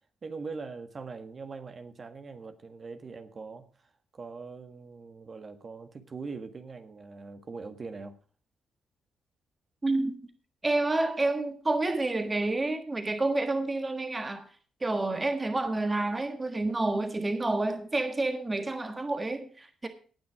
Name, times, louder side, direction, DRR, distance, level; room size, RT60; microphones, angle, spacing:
voice 1, 0.2-8.2, right 4 dB, 45° right, 1.7 m, -42 dB
voice 2, 9.8-10.2 10.6-14.5 14.8-19.9, right 2 dB, 25° right, 1.5 m, -29 dB
18.5 x 6.3 x 4.8 m
supercardioid pair, 65°, 0 cm